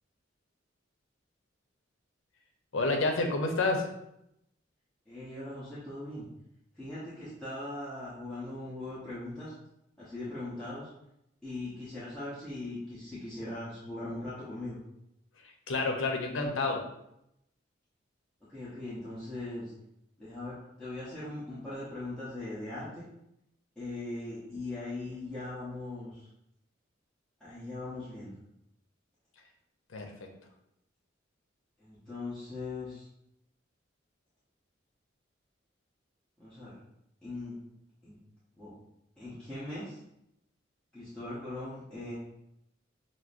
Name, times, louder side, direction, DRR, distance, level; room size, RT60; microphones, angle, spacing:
voice 1, 2.7-3.9 15.7-16.8 29.9-30.1, left 3 dB, 90° left, 3 dB, 0.6 m, -29 dB
voice 2, 5.1-6.3 6.7-9.5 10.0-10.9 11.4-14.8 18.5-19.7 20.2-23.0 23.8-26.3 27.4-28.3 31.8-33.1 36.4-36.8 37.2-37.5 38.0-38.2 38.6-38.7 39.2-40.0 40.9-42.1, left 2 dB, 5° left, -13 dB, 0.9 m, -40 dB
5.9 x 2.1 x 2.5 m, 0.81 s
head